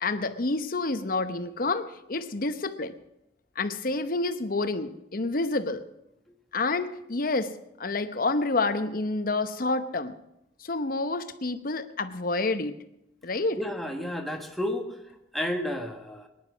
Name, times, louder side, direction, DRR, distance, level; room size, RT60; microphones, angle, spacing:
voice 1, 0.0-2.9 3.6-5.8 6.5-7.5 7.8-10.1 10.6-12.8 13.2-13.6, left 3 dB, 55° left, 10 dB, 0.9 m, -28 dB
voice 2, 13.6-15.0 15.3-16.3, left 1 dB, ahead, 3 dB, 1.5 m, -31 dB
19.0 x 10.5 x 6.1 m, 0.85 s
head